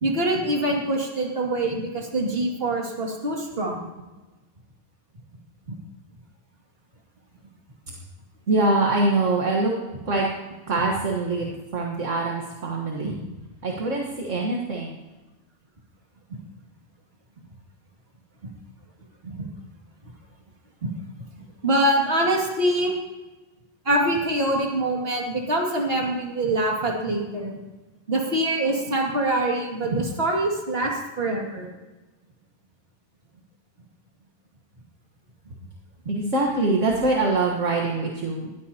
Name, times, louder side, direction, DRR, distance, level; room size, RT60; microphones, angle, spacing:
voice 1, 0.0-3.8 13.0-13.2 16.3-16.4 19.2-19.5 21.2-21.3 21.6-22.9 23.8-27.6 28.1-31.7, right 1 dB, 40° right, -1 dB, 2.6 m, -24 dB
voice 2, 8.5-9.7 10.1-10.3 10.7-11.5 11.7-13.2 13.6-15.0 36.1-38.5, right 2 dB, 60° right, -1 dB, 1.8 m, -24 dB
20.5 x 14.0 x 2.9 m, 1.2 s
omnidirectional pair, 1.5 m